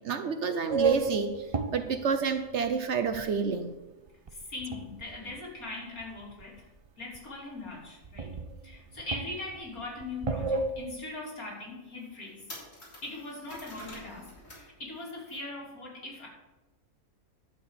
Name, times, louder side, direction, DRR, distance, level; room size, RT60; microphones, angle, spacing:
voice 1, 0.0-1.5 1.7-3.8, right 6 dB, 60° right, 8 dB, 0.9 m, -29 dB
sound 1, 0.7-3.6 4.1-5.4 6.0-6.6 6.9-7.0 7.1-7.2 7.7-7.8 8.0-10.9, right 4 dB, 40° right, 0.4 m, -32 dB
voice 2, 4.3-6.7 7.0-8.4 8.6-12.4 13.0-16.3, left 2 dB, 75° left, -4 dB, 3.6 m, -40 dB
sound 2, 10.4-10.5 11.0-11.1 11.6-11.7 12.0-14.7 15.0-15.4, left 1 dB, 60° left, 3.6 m, -47 dB
11.5 x 4.6 x 8.2 m, 1.1 s
omnidirectional pair, 1.5 m